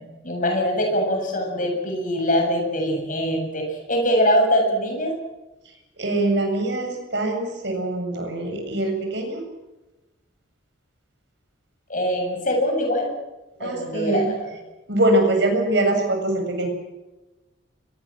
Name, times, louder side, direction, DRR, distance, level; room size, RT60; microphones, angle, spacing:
voice 1, 0.0-5.1 11.9-13.1 13.6-14.5, equal, 40° left, 2 dB, 7.5 m, -23 dB
voice 2, 5.7-9.4 13.6-14.3 14.9-16.7, right 1 dB, 55° right, 3 dB, 7.2 m, -23 dB
24.0 x 22.5 x 7.6 m, 1.1 s
head